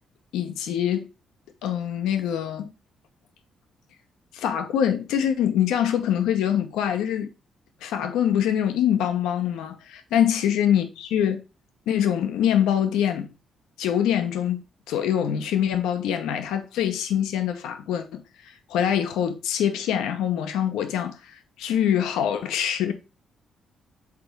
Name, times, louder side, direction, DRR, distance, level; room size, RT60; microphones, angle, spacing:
voice 1, 0.3-1.1 1.6-2.7 4.3-7.3 7.8-11.4 11.9-13.3 13.8-14.6 14.9-22.9, left 9 dB, 85° left, 0.9 m, -24 dB
6.0 x 3.9 x 4.5 m
supercardioid pair, 65°, 0 cm